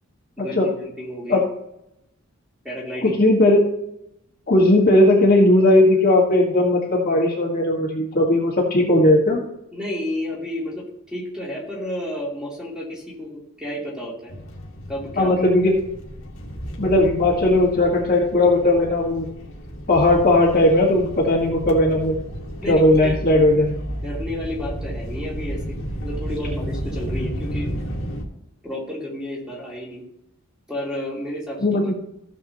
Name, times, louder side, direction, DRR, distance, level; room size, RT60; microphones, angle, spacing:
voice 1, 0.4-1.5 2.6-3.2 9.7-14.3 14.9-15.4 22.6-23.2 24.0-27.7 28.6-30.0 30.7-31.6, left 1 dB, 5° right, -5 dB, 3.0 m, -31 dB
voice 2, 3.0-3.6 4.5-9.4 15.2-15.7 16.8-19.3 19.9-22.2 22.7-23.8 31.6-31.9, left 1 dB, 40° left, -2 dB, 1.8 m, -17 dB
sound 1, 14.3-28.2, equal, 60° left, 1.9 m, -32 dB
15.5 x 7.2 x 3.0 m, 0.81 s
head